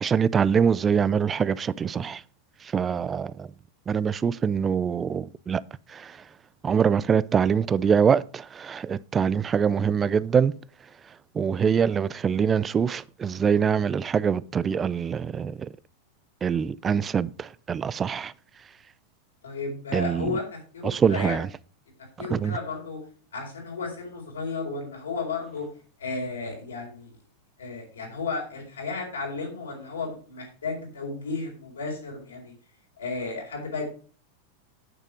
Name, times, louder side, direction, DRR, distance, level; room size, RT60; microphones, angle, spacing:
voice 1, 0.0-2.2 2.7-3.5 3.9-5.6 5.9-6.2 6.6-10.5 11.3-15.7 16.4-18.3 19.9-20.4 20.8-21.5 22.2-22.5, right 7 dB, 25° right, 0.5 m, -24 dB
voice 2, 19.4-21.4 22.2-23.0 23.3-25.7 26.0-27.1 27.6-32.5 33.0-33.9, left 4 dB, 85° left, 4.3 m, -33 dB
8.9 x 6.7 x 5.0 m
hypercardioid pair, 95°, 0 cm